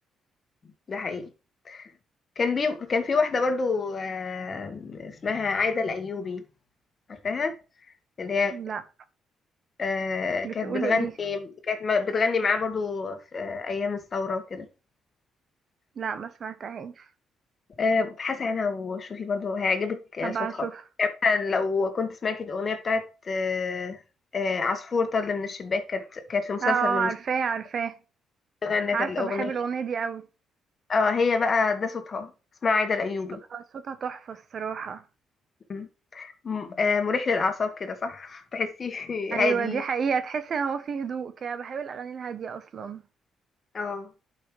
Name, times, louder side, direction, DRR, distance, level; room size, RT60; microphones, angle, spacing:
voice 1, 0.9-1.3 1.7-1.9 2.4-6.4 7.1-7.6 8.2-8.6 9.8-14.7 17.8-20.7 21.0-24.0 24.3-27.1 28.6-29.5 30.9-32.3 32.6-33.4 35.7-39.8 43.7-44.1, left 4 dB, 40° left, 1.7 m, -27 dB
voice 2, 8.5-8.8 10.4-11.1 16.0-17.1 20.2-20.8 26.6-28.0 28.9-30.3 33.5-35.0 39.3-43.0, right 6 dB, 55° right, 0.9 m, -30 dB
11.0 x 5.7 x 3.3 m
cardioid pair, 90°, 0 cm